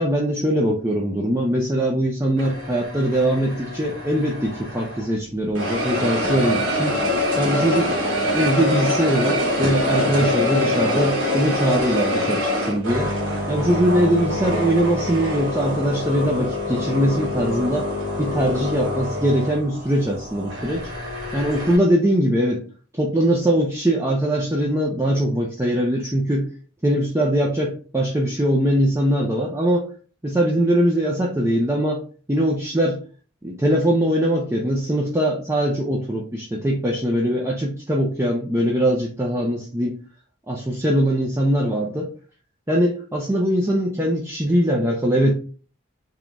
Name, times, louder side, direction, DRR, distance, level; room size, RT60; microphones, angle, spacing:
voice 1, 0.0-7.0 7.4-7.9 8.3-13.1 13.5-17.9 18.2-20.9 21.3-22.6 22.9-26.5 26.8-29.9 30.2-32.0 32.3-33.0 33.4-39.9 40.5-42.1 42.7-45.3, right 1 dB, 15° right, -2 dB, 0.5 m, -21 dB
sound 1, 2.4-5.2 5.6-21.8, left 1 dB, 75° right, 1.2 m, -25 dB
3.7 x 3.0 x 3.4 m, 0.40 s
head